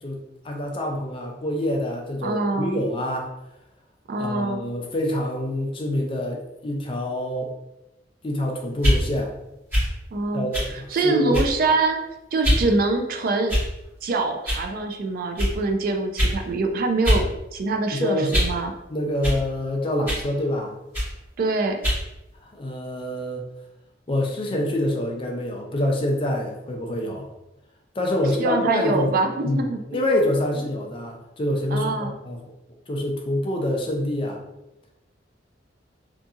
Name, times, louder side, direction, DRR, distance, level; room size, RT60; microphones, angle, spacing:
voice 1, 0.0-3.3 4.2-7.5 8.2-9.3 10.3-11.4 17.9-18.4 18.9-20.7 22.4-23.4 24.1-27.3 28.0-29.1 29.4-32.4 32.9-34.4, left 1 dB, 30° left, 1 dB, 0.4 m, -26 dB
voice 2, 2.2-2.8 4.1-4.6 10.1-10.5 10.9-12.0 12.3-13.6 14.0-18.7 21.4-21.8 28.4-30.1 31.7-32.1, right 3 dB, 55° right, 4 dB, 0.3 m, -24 dB
sound 1, 8.7-9.0 9.7-9.9 10.5-10.7 11.3-11.6 12.4-12.7 13.5-13.9 14.5-14.7 15.4-15.5 16.2-16.4 17.0-17.3 17.6-18.6 19.2-19.4 20.1-20.3 20.9-21.1 21.8-22.0, equal, 10° right, 1.5 m, -22 dB
2.7 x 2.5 x 2.4 m, 0.91 s
head